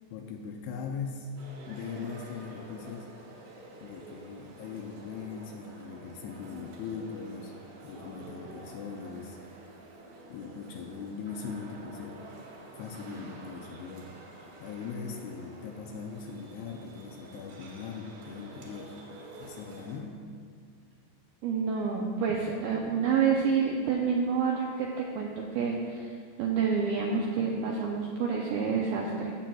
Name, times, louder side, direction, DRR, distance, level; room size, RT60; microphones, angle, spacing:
voice 1, 0.1-1.3 1.7-3.1 3.8-7.5 7.8-9.4 10.3-12.2 12.7-14.1 14.6-20.2, left 5 dB, 80° left, 3 dB, 2.4 m, -40 dB
sound 1, 1.4-20.0, right 2 dB, 70° right, 2.9 m, -49 dB
voice 2, 21.4-26.1 26.4-29.3, right 6 dB, 85° right, -1 dB, 2.1 m, -28 dB
14.5 x 7.4 x 2.3 m, 2.1 s
omnidirectional pair, 5.0 m